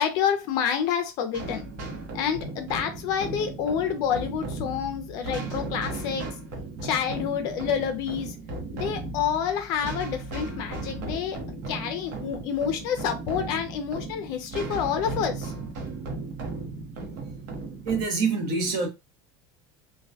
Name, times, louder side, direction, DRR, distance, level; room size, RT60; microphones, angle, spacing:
voice 1, 0.0-1.6 2.1-6.3 6.8-8.3 8.7-11.4 11.7-15.5, left 8 dB, 40° left, 0.4 m, -28 dB
sound 1, 1.3-18.0, right 2 dB, 80° right, 0.8 m, -36 dB
voice 2, 17.8-18.9, right 4 dB, 45° right, 0.7 m, -25 dB
2.2 x 2.1 x 2.6 m
cardioid pair, 180°, 10 cm